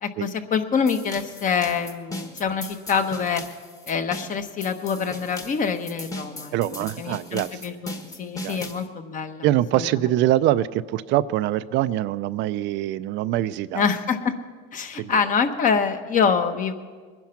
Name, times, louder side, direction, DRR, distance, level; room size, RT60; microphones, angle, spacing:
voice 1, 0.0-3.4 3.9-6.5 7.0-9.5 9.7-9.9 13.7-14.3 14.7-16.7, left 6 dB, 40° left, 8 dB, 1.2 m, -25 dB
sound 1, 0.9-8.9, left 2 dB, 15° left, 1.3 m, -38 dB
voice 2, 6.5-7.6 8.4-8.6 9.4-13.9 14.9-15.2 15.6-15.8, right 14 dB, 60° right, 14 dB, 0.5 m, -24 dB
21.5 x 10.5 x 5.8 m, 1.5 s
cardioid pair, 125°, 21 cm